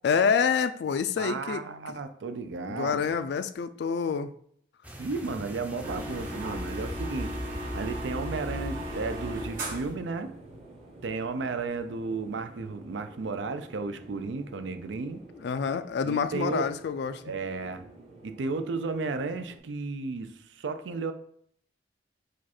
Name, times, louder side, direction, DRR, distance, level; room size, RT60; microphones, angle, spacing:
voice 1, 0.0-2.0 2.7-4.3 15.4-17.3, left 6 dB, 65° left, 0.3 m, -27 dB
voice 2, 1.2-3.0 5.0-7.4 7.7-10.3 11.0-15.2 16.0-16.7 17.2-17.8 18.2-21.1, right 4 dB, 85° right, 0.5 m, -33 dB
sound 1, 4.8-9.7, equal, 10° right, 0.5 m, -46 dB
sound 2, 5.5-19.6, right 2 dB, 35° right, 0.9 m, -50 dB
sound 3, 5.8-10.0, equal, 50° right, 1.5 m, -35 dB
4.9 x 2.3 x 4.2 m
head